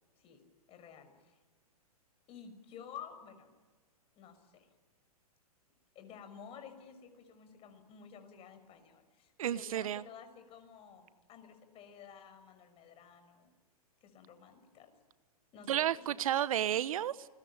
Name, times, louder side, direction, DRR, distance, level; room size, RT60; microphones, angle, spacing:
voice 1, 0.7-1.4 2.3-3.5 4.1-4.7 5.9-13.5 14.0-14.9 15.5-16.0, left 7 dB, 30° left, 6.0 m, -52 dB
voice 2, 9.4-10.0 15.7-17.3, right 11 dB, 60° right, 1.0 m, -32 dB
29.0 x 21.5 x 8.9 m
hypercardioid pair, 120°, 20 cm